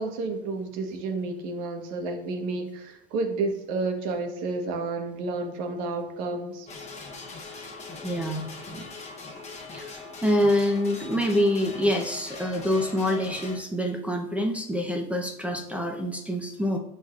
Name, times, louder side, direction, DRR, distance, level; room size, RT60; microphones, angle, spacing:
voice 1, 0.0-6.7, right 3 dB, 75° right, 5 dB, 1.2 m, -31 dB
sound 1, 6.7-13.6, left 3 dB, 20° left, 0.9 m, -41 dB
voice 2, 8.0-8.9 9.7-9.9 10.2-16.8, equal, 5° right, 2 dB, 0.6 m, -26 dB
12.0 x 4.1 x 2.4 m, 0.81 s
cardioid pair, 150°, 31 cm